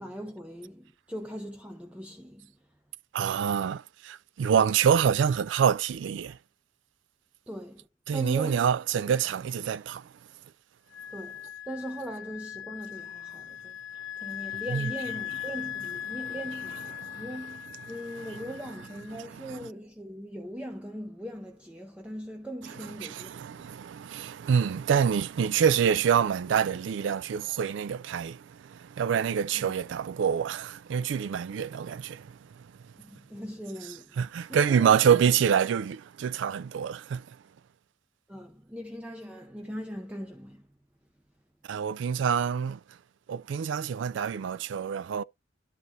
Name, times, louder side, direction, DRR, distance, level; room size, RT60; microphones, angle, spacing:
voice 1, 0.0-2.5 7.5-7.9 8.1-8.6 11.1-13.8 14.2-23.7 29.5-29.7 33.0-35.1 38.3-40.7, equal, 5° right, 0.6 m, -40 dB
voice 2, 3.1-6.4 8.1-10.1 14.7-14.9 17.0-17.3 18.2-18.4 19.1-19.6 23.0-32.7 34.2-37.3 41.7-42.8 43.3-45.2, right 7 dB, 75° right, 0.3 m, -26 dB
Wind instrument woodwind instrument, 10.9-19.2, left 11 dB, 75° left, 1.1 m, -39 dB
11.0 x 4.0 x 3.0 m
head